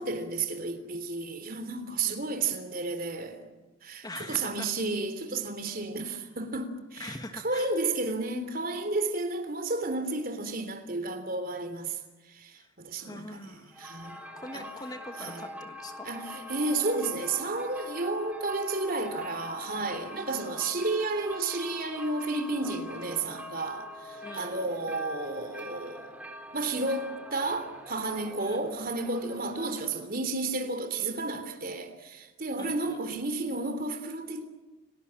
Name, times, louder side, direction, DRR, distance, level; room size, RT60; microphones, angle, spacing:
voice 1, 0.0-3.5 3.8-12.0 12.3-14.2 14.5-14.7 15.2-15.4 16.0-26.2 26.5-34.5, right 3 dB, 45° right, 3.2 m, -32 dB
voice 2, 4.0-4.7 7.0-7.7 12.5-12.7 13.0-13.8 14.4-16.1 20.3-20.4 24.2-24.9 28.4-28.7 32.6-33.0, left 1 dB, 20° left, 1.5 m, -43 dB
sound 1, 13.7-30.2, left 1 dB, 5° right, 3.2 m, -44 dB
30.0 x 19.0 x 8.9 m
head